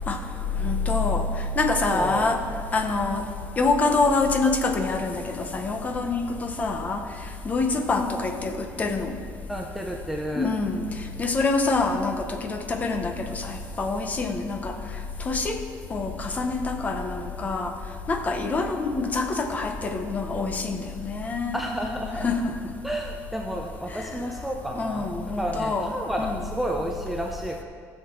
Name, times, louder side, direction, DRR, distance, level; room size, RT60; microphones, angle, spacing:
voice 1, 0.6-1.2 1.6-2.4 2.7-3.2 3.6-7.0 7.4-9.1 10.4-10.8 11.2-14.7 15.2-15.6 15.9-17.7 18.1-21.6 22.2-22.5 23.9-24.1 24.8-25.9 26.2-26.4, left 3 dB, 25° left, 5 dB, 0.9 m, -26 dB
voice 2, 1.9-2.3 9.5-10.5 21.5-22.3 22.8-25.1 25.3-27.6, right 1 dB, ahead, 0 dB, 0.6 m, -31 dB
15.5 x 6.7 x 4.5 m, 2.2 s
cardioid pair, 155°, 6 cm